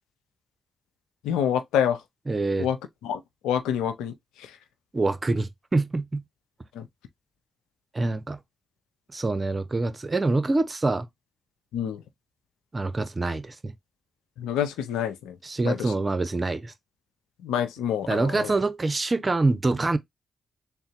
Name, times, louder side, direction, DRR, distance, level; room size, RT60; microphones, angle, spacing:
voice 1, 1.2-2.0 2.6-2.8 3.0-4.6 6.7-6.9 11.7-12.0 14.4-15.4 15.6-15.9 17.4-18.6, left 9 dB, 85° left, 0.5 m, -27 dB
voice 2, 2.3-2.7 4.9-6.2 7.9-8.4 9.1-11.1 12.7-13.7 15.4-16.7 18.1-20.0, right 3 dB, 35° right, 0.7 m, -25 dB
3.6 x 2.1 x 4.2 m
hypercardioid pair, 40°, 0 cm